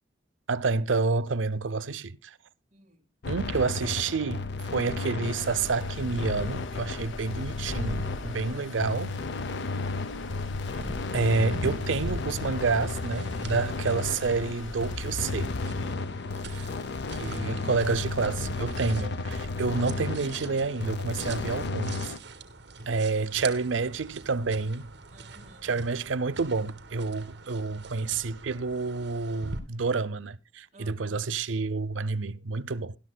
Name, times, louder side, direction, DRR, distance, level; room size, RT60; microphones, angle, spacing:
voice 1, 0.5-2.4 3.3-9.1 11.1-15.6 17.2-22.1 22.9-24.9 25.6-33.0, right 4 dB, 85° right, 0.6 m, -29 dB
voice 2, 2.7-3.1 7.8-9.2 16.3-18.5 22.8-24.2 25.1-25.8 30.7-31.3, right 2 dB, 35° right, 2.3 m, -54 dB
sound 1, 3.2-22.2, left 3 dB, 60° left, 0.6 m, -33 dB
Stream, 5.2-16.0, left 2 dB, 85° left, 1.1 m, -43 dB
sound 2, 10.7-29.6, right 3 dB, 65° right, 1.9 m, -44 dB
20.0 x 11.5 x 2.2 m
head